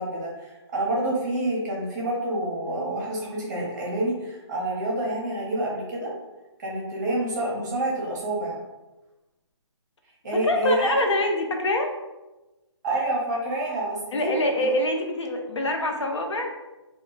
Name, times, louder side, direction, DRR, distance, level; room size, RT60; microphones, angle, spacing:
voice 1, 0.0-6.1 6.6-8.6 10.2-10.9 12.8-14.3, right 1 dB, 40° right, -4 dB, 0.8 m, -28 dB
voice 2, 10.3-11.9 14.1-16.5, left 1 dB, 75° left, 3 dB, 0.7 m, -25 dB
2.2 x 2.2 x 3.9 m, 1.1 s
hypercardioid pair, 155°, 15 cm